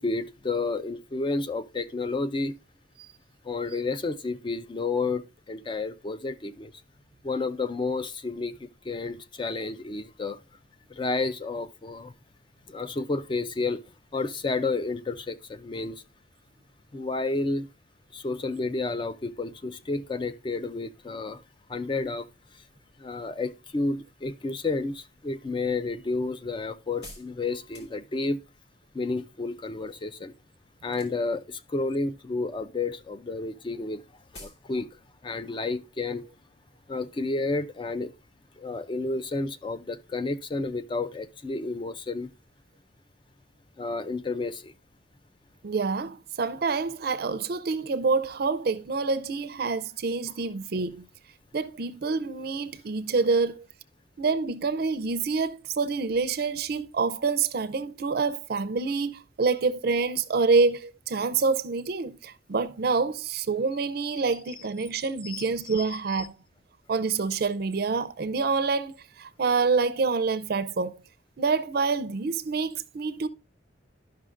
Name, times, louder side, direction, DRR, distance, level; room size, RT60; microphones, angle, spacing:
voice 1, 0.0-2.5 3.4-6.7 7.2-10.4 10.9-12.1 12.7-13.8 14.1-16.0 16.9-17.7 18.1-21.4 21.7-22.3 23.0-28.4 28.9-30.3 30.8-34.0 34.3-36.2 36.9-38.1 38.6-42.3 43.8-44.7 65.2-65.9 66.2-66.3, left 3 dB, 25° left, 0.4 m, -31 dB
sound 1, 27.0-28.4 30.8-31.5 31.8-32.4 32.6-32.8 33.1-33.2 33.4-33.5 33.8-33.9 34.3-34.7 35.0-35.1, left 2 dB, 60° left, 2.0 m, -48 dB
voice 2, 45.6-51.1 51.5-53.7 54.2-66.4 66.9-71.0 71.4-73.3, right 4 dB, 55° right, 0.5 m, -27 dB
12.0 x 5.6 x 2.5 m
head